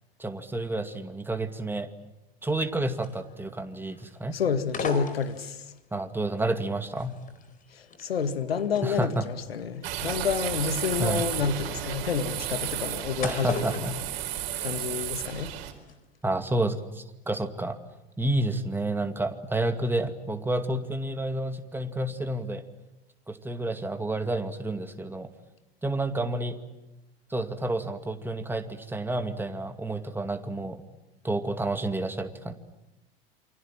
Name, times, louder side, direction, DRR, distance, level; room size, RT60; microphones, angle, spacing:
voice 1, 0.2-1.9 2.4-4.4 5.9-7.2 8.8-9.2 11.0-11.2 13.2-14.0 14.6-14.7 16.2-17.8 18.2-22.6 23.3-25.3 25.8-26.6 27.3-30.8 31.2-32.5, right 2 dB, 5° right, 2.3 m, -30 dB
sound 1, 2.6-3.6 3.9-4.2 4.6-5.8 6.4-15.1 15.3-16.0 16.3-16.5, left 4 dB, 25° left, 4.5 m, -40 dB
voice 2, 4.3-5.6 7.7-13.9 14.6-15.5, left 6 dB, 75° left, 2.1 m, -29 dB
sound 2, 9.8-15.7, right 12 dB, 55° right, 4.3 m, -33 dB
28.5 x 25.0 x 7.6 m
figure-of-eight pair, 80°, 30 cm